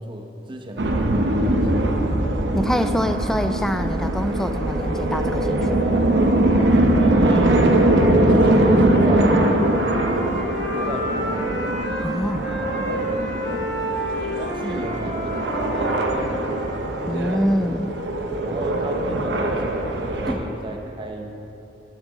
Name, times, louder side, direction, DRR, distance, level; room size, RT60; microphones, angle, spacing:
voice 1, 0.0-1.9 6.6-9.5 10.7-11.6 12.5-13.3 14.5-16.5 18.4-21.4, right 1 dB, 30° right, 3 dB, 0.8 m, -34 dB
sound 1, 0.8-20.3, right 1 dB, 85° right, 0.8 m, -21 dB
voice 2, 2.5-5.9 12.0-12.5 17.1-17.9 20.3-20.4, equal, 5° left, 8 dB, 0.3 m, -25 dB
Wind instrument woodwind instrument, 8.5-12.1 12.4-16.7, equal, 80° left, 1.8 m, -30 dB
11.0 x 6.3 x 5.0 m, 3.0 s
head